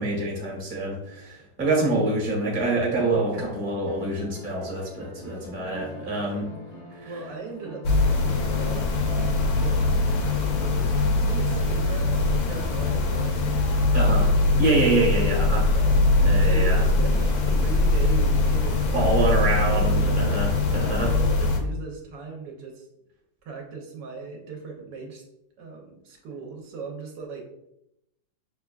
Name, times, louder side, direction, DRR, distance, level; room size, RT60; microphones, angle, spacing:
voice 1, 0.0-6.5 7.0-7.1 13.9-15.7 16.2-16.8 18.9-21.1, right 2 dB, 35° right, -3 dB, 0.9 m, -26 dB
sound 1, 3.1-10.3, left 2 dB, 85° left, 1.6 m, -43 dB
voice 2, 6.2-6.5 7.0-9.8 10.4-10.9 11.2-13.5 14.0-14.7 15.7-16.0 16.4-20.5 20.7-22.9 23.4-25.2 25.6-27.4, right 4 dB, 80° right, 1 dB, 1.3 m, -38 dB
sound 2, 7.8-21.6, left 2 dB, 70° left, 0.9 m, -22 dB
5.9 x 2.2 x 2.2 m, 0.82 s
omnidirectional pair, 2.0 m